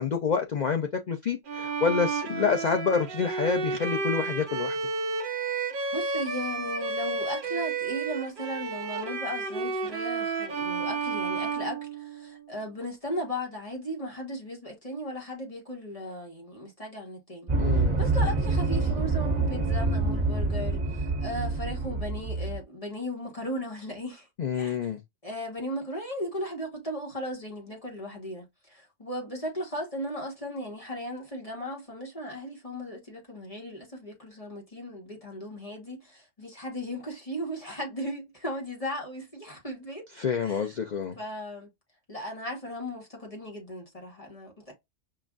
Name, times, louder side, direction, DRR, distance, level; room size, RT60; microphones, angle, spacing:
voice 1, 0.0-4.8 17.6-18.0 24.4-25.0 40.2-41.2, left 6 dB, 65° left, 0.4 m, -28 dB
Bowed string instrument, 1.5-12.5, right 4 dB, 50° right, 0.7 m, -31 dB
voice 2, 5.9-24.3 24.5-24.9 25.2-40.1 40.4-40.8 41.1-41.7 42.1-44.7, equal, 25° left, 1.3 m, -36 dB
sound 1, 17.5-22.6, right 3 dB, 25° right, 1.4 m, -26 dB
5.8 x 2.5 x 2.4 m
omnidirectional pair, 1.4 m